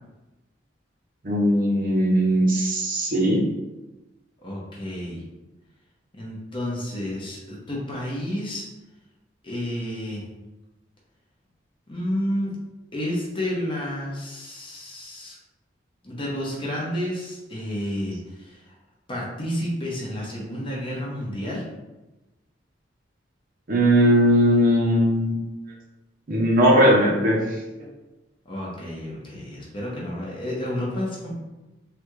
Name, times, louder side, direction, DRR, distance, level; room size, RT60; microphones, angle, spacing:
voice 1, 1.2-3.4 23.7-25.3 26.3-27.4, equal, 50° right, -2 dB, 0.7 m, -19 dB
voice 2, 4.4-5.2 6.1-8.6 9.4-10.2 11.9-12.5 12.9-15.4 16.0-18.6 19.1-21.7 28.5-31.3, equal, 30° left, -4 dB, 0.8 m, -30 dB
3.3 x 2.3 x 3.1 m, 1.1 s
head